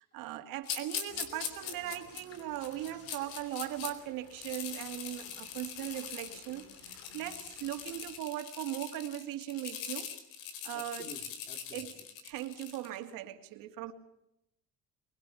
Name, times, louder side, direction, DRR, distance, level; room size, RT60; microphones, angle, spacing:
voice 1, 0.0-10.1 10.6-11.1 11.7-11.9 12.2-13.9, right 13 dB, 75° right, 6 dB, 2.8 m, -39 dB
sound 1, 0.6-3.9 4.3-13.0, left 8 dB, 85° left, 4.2 m, -42 dB
sound 2, 1.1-8.2, left 5 dB, 45° left, 2.8 m, -56 dB
voice 2, 10.7-11.9, left 2 dB, 25° left, 4 dB, 2.8 m, -51 dB
24.5 x 23.0 x 7.2 m, 0.81 s
cardioid pair, 180°, 34 cm